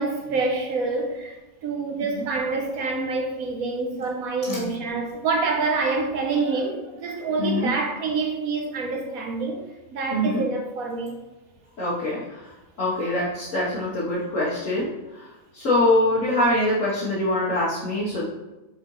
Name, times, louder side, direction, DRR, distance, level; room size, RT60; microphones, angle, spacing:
voice 1, 0.0-1.4 1.6-9.6 9.9-11.2, right 3 dB, 85° right, 1.4 m, -26 dB
voice 2, 7.4-7.7 10.1-10.5 11.8-18.2, left 1 dB, 65° left, 1.5 m, -24 dB
8.4 x 4.0 x 3.0 m
omnidirectional pair, 1.5 m